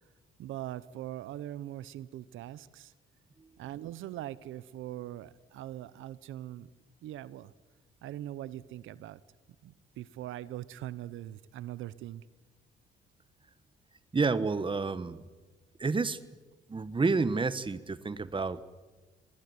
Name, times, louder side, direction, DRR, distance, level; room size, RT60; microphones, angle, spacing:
voice 1, 0.4-2.9 3.6-6.7 7.0-7.5 8.0-9.2 9.6-12.2, right 13 dB, 85° right, 18 dB, 0.9 m, -41 dB
voice 2, 14.1-15.2 15.8-16.2 16.7-18.6, right 4 dB, 25° right, 15 dB, 1.4 m, -29 dB
24.5 x 19.5 x 9.7 m, 1.2 s
cardioid pair, 90°, 20 cm